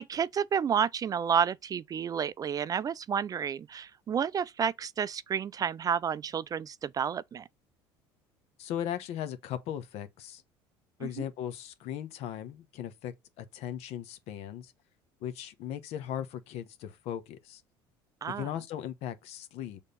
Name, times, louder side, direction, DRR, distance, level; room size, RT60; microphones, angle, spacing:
voice 1, 0.0-7.4 11.0-11.2 18.2-18.5, right 8 dB, 35° right, 0.3 m, -30 dB
voice 2, 8.6-10.4 11.0-14.7 15.2-17.6 18.3-19.8, left 10 dB, 65° left, 1.1 m, -38 dB
6.7 x 3.6 x 3.9 m
supercardioid pair, 85°, 11 cm